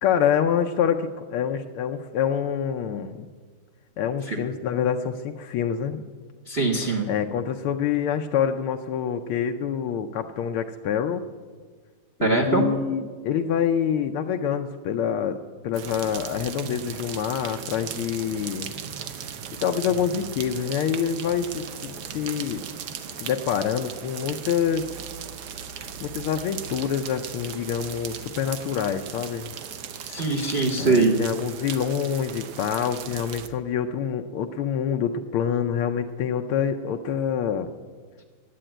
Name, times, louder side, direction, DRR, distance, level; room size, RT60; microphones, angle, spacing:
voice 1, 0.0-3.3 4.0-6.1 7.0-11.2 12.2-18.7 19.2-19.3 19.6-22.6 23.2-24.9 26.0-29.5 30.8-37.7, left 8 dB, 80° left, 5 dB, 1.5 m, -26 dB
voice 2, 6.5-7.1 12.2-12.6 30.0-31.2, right 3 dB, 40° right, 2 dB, 0.9 m, -22 dB
sound 1, 15.7-33.5, right 7 dB, 65° right, 1.1 m, -37 dB
11.0 x 8.5 x 8.9 m, 1.5 s
omnidirectional pair, 2.3 m